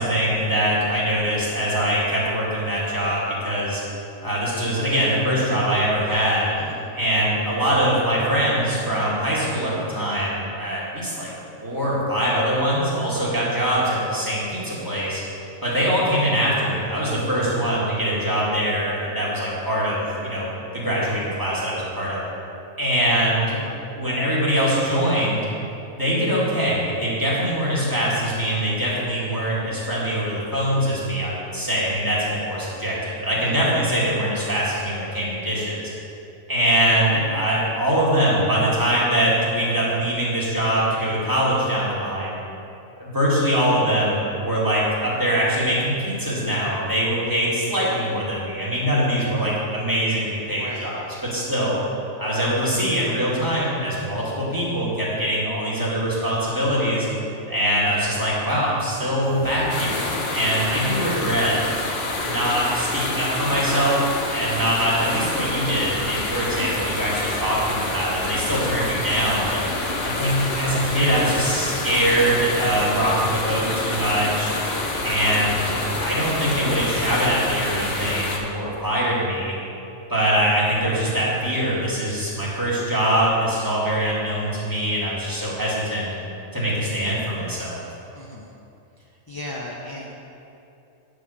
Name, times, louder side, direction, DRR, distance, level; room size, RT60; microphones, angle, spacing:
voice 1, 0.0-3.8 4.2-6.5 6.9-11.3 11.6-15.2 15.6-22.2 22.8-23.6 23.9-25.4 25.9-35.9 36.5-42.4 43.0-51.0 51.3-51.8 52.2-57.1 57.4-61.5 62.2-69.6 70.0-74.5 75.0-79.5 80.1-86.1 86.5-87.8, equal, 15° right, -7 dB, 2.2 m, -23 dB
voice 2, 6.6-7.0 17.1-17.4 33.4-33.6 50.5-50.9 64.3-64.6 69.5-69.9 88.1-88.6 89.0-90.1, left 1 dB, 30° left, -3 dB, 0.4 m, -38 dB
sound 1, 59.2-78.1, right 1 dB, 55° right, 1.5 m, -37 dB
sound 2, 59.7-78.4, left 2 dB, 50° left, 1.2 m, -28 dB
9.1 x 5.0 x 7.0 m, 2.8 s
omnidirectional pair, 1.4 m